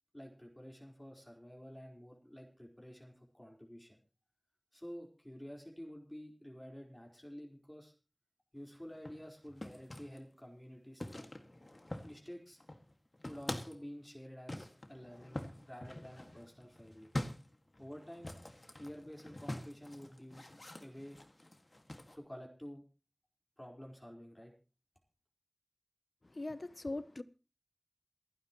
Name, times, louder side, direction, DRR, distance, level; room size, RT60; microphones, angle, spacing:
voice 1, 0.1-4.0 4.7-7.9 8.5-11.3 12.0-12.6 13.2-17.1 17.8-18.4 18.7-20.5 20.8-21.2 22.2-22.8 23.6-24.5, equal, 20° left, 4.4 m, -50 dB
sound 1, 8.9-10.2 11.0-12.3 12.6-13.8 14.5-22.2, left 1 dB, 60° left, 1.9 m, -45 dB
voice 2, 26.2-27.2, left 2 dB, 80° left, 0.8 m, -41 dB
28.0 x 9.7 x 3.0 m
wide cardioid pair, 40°, 0 cm